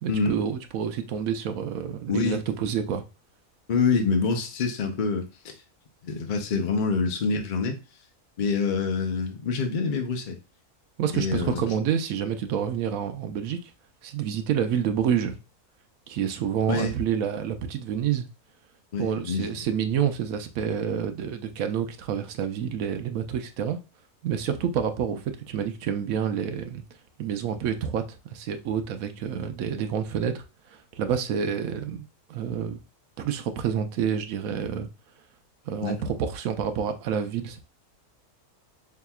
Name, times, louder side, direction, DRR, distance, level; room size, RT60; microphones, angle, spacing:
voice 1, 0.0-3.0 11.0-13.7 14.0-15.4 16.1-18.3 19.0-23.8 24.2-26.8 27.2-30.4 30.7-32.8 33.2-34.9 35.7-37.6, right 8 dB, 70° right, 1.0 m, -28 dB
voice 2, 2.1-2.4 3.7-5.5 6.0-7.8 8.4-10.4 11.1-11.6 16.7-17.0 18.9-19.5 35.8-36.0, left 4 dB, 50° left, 0.6 m, -26 dB
5.8 x 2.8 x 2.3 m
omnidirectional pair, 1.6 m